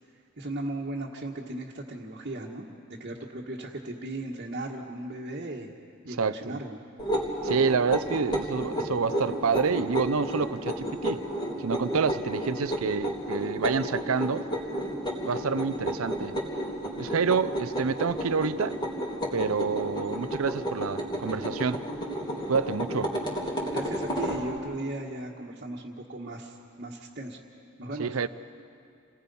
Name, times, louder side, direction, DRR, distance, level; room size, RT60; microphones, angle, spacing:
voice 1, 0.4-2.7 3.0-5.7 6.1-6.8 23.7-27.4 27.8-28.2, right 1 dB, 45° right, -4 dB, 1.5 m, -36 dB
voice 2, 6.2-6.6 7.4-11.2 11.6-14.5 15.2-16.4 17.0-18.8 19.3-21.8 22.5-23.1 28.0-28.3, right 5 dB, 75° right, 13 dB, 0.6 m, -28 dB
sound 1, 7.0-24.4, equal, 20° left, 3.2 m, -32 dB
28.5 x 19.5 x 5.5 m, 2.3 s
head